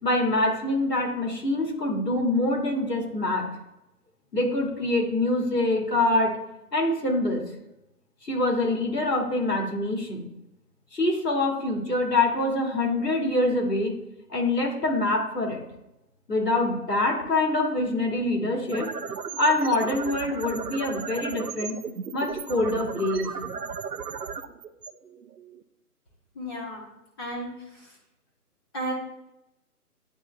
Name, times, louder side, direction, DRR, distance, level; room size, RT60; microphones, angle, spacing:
voice 1, 0.0-3.5 4.3-6.4 6.7-7.4 8.2-10.3 10.9-13.9 14.3-15.6 16.3-18.9 19.4-21.8 22.1-23.3, left 2 dB, 85° left, 1 dB, 2.1 m, -25 dB
sound 1, 18.7-25.6, right 6 dB, 80° right, 0.7 m, -36 dB
voice 2, 26.3-26.9 27.2-27.9 28.7-28.9, right 1 dB, 15° left, -5 dB, 1.0 m, -34 dB
9.5 x 3.5 x 3.3 m, 0.89 s
figure-of-eight pair, 145°, 47 cm